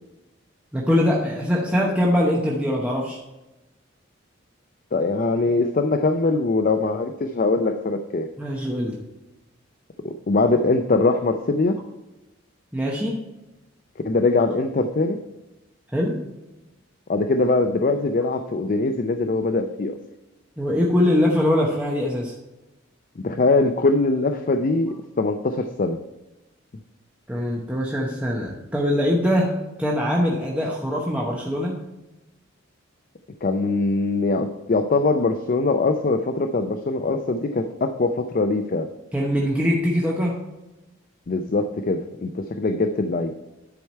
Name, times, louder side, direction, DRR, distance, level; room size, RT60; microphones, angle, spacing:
voice 1, 0.7-3.2 8.4-9.0 12.7-13.2 15.9-16.2 20.6-22.3 27.3-29.5 29.8-31.8 39.1-40.4, left 1 dB, 5° right, -3 dB, 0.8 m, -22 dB
voice 2, 4.9-8.3 10.0-11.8 14.0-15.2 17.1-20.0 23.2-26.0 33.4-38.9 41.3-43.3, left 3 dB, 40° left, 7 dB, 0.4 m, -22 dB
10.5 x 4.6 x 4.4 m, 1.0 s
head